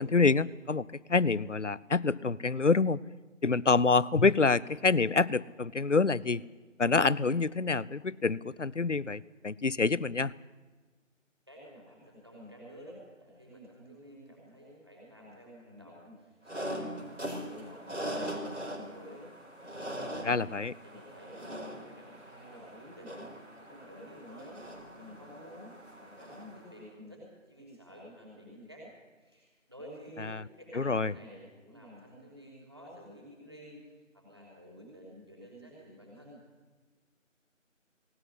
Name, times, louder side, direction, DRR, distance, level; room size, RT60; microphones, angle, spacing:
voice 1, 0.0-3.0 3.4-6.4 6.8-10.3 20.2-20.7 30.3-30.4 30.7-31.1, left 4 dB, 65° left, 21 dB, 0.7 m, -27 dB
voice 2, 11.5-17.1 17.4-19.3 19.8-20.5 20.8-24.6 24.9-28.9 29.2-36.3, equal, 20° right, -3 dB, 5.4 m, -50 dB
sound 1, 16.5-26.8, equal, 65° right, 4.9 m, -41 dB
19.5 x 18.5 x 8.0 m, 1.3 s
figure-of-eight pair, 180°, 39 cm